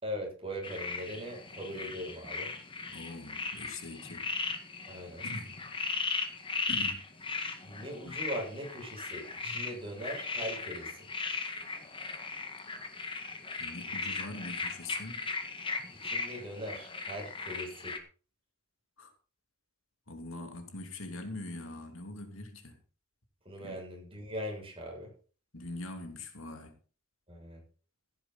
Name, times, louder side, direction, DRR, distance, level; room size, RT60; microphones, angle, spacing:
voice 1, 0.0-2.5 4.9-5.3 7.6-10.9 16.0-18.0 23.5-25.1 27.3-27.6, equal, 25° right, 7.2 m, -40 dB
sound 1, 0.6-18.0, left 4 dB, 25° left, 1.9 m, -37 dB
voice 2, 2.9-4.3 5.2-5.5 6.7-7.0 8.1-8.2 9.5-9.6 13.6-15.2 19.0-19.1 20.1-22.8 23.6-23.8 25.5-26.7, left 2 dB, 75° left, 2.8 m, -43 dB
15.0 x 10.5 x 4.2 m
head